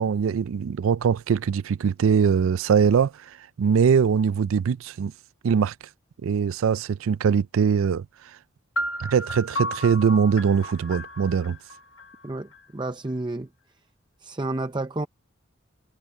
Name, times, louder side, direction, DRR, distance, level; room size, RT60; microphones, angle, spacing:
voice 1, 0.0-5.1 5.4-5.7 6.2-8.1 9.0-11.6, right 6 dB, 75° right, 0.4 m, -22 dB
sound 1, 8.8-12.6, equal, 80° left, 1.4 m, -33 dB
voice 2, 12.2-13.5 14.2-15.1, right 2 dB, 20° right, 0.6 m, -30 dB
head